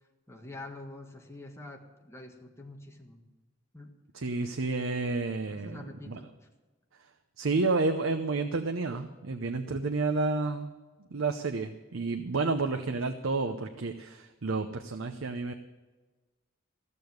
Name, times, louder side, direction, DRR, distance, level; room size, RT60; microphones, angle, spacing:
voice 1, 0.3-3.2 3.7-3.9 5.5-6.3, left 2 dB, 15° left, 2 dB, 1.5 m, -46 dB
voice 2, 4.1-5.8 6.1-6.2 7.4-10.7 11.1-15.5, right 3 dB, 75° right, 6 dB, 0.7 m, -30 dB
14.5 x 6.8 x 9.4 m, 1.2 s
head